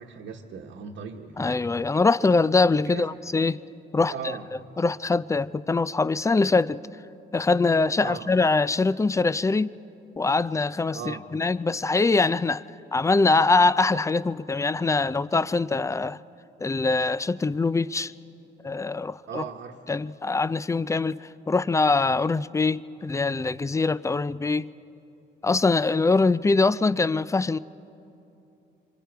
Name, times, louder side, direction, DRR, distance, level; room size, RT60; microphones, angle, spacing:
voice 1, 0.0-1.4 2.9-3.1 4.1-4.5 8.0-8.3 10.9-11.3 19.3-19.8, right 7 dB, 75° right, 1.3 m, -37 dB
voice 2, 1.4-3.6 3.9-4.4 4.8-6.8 7.3-9.7 10.2-12.6 12.9-16.2 16.6-18.1 18.6-19.4 19.9-24.7 25.4-27.6, left 3 dB, 15° left, 0.4 m, -23 dB
27.0 x 25.0 x 4.7 m
cardioid pair, 90°, 20 cm